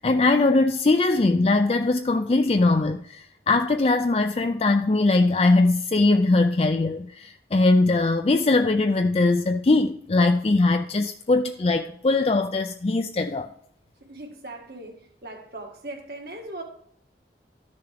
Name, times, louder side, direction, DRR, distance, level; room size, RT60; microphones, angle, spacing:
voice 1, 0.0-13.5, left 2 dB, 35° left, 0.4 m, -21 dB
voice 2, 14.0-16.6, right 2 dB, 60° right, 1.8 m, -39 dB
13.5 x 6.8 x 3.5 m
head